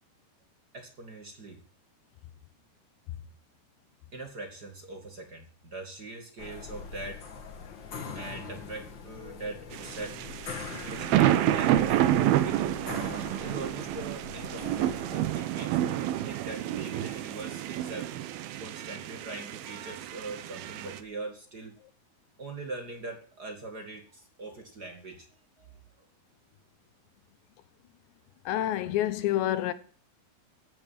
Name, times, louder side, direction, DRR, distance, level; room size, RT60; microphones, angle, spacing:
voice 1, 0.7-1.6 4.1-7.2 8.1-10.2 10.9-12.0 12.4-12.7 13.4-18.1 18.6-21.7 22.4-25.3 25.6-25.7, right 3 dB, 35° right, 1.8 m, -42 dB
sound 1, 6.4-15.3, left 5 dB, 50° left, 1.4 m, -43 dB
sound 2, 9.7-21.0, right 12 dB, 70° right, 2.6 m, -29 dB
voice 2, 28.5-29.7, left 13 dB, 90° left, 3.4 m, -27 dB
16.0 x 8.7 x 7.4 m
omnidirectional pair, 4.9 m